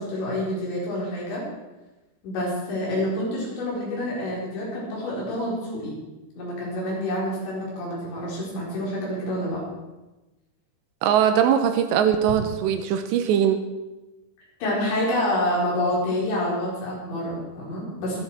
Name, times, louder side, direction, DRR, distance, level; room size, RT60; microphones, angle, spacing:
voice 1, 0.0-1.4 2.2-6.0 6.4-9.6 14.6-18.2, left 1 dB, 85° left, -5 dB, 6.7 m, -27 dB
voice 2, 11.0-13.6, right 9 dB, 85° right, 8 dB, 3.0 m, -21 dB
23.0 x 7.7 x 4.8 m, 1.1 s
omnidirectional pair, 5.0 m